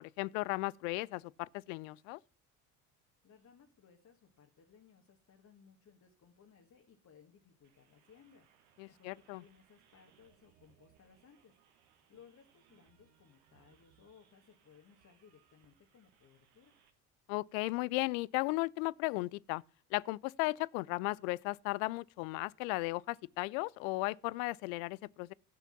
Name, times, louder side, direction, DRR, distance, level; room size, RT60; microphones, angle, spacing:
voice 1, 0.0-2.2 8.8-9.4 17.3-19.6 19.9-25.3, left 23 dB, 65° left, 0.5 m, -36 dB
voice 2, 3.2-16.8, left 7 dB, 40° left, 1.9 m, -63 dB
sound 1, 7.6-16.9, right 10 dB, 65° right, 1.8 m, -70 dB
13.5 x 5.7 x 5.8 m
figure-of-eight pair, 60°, 45 cm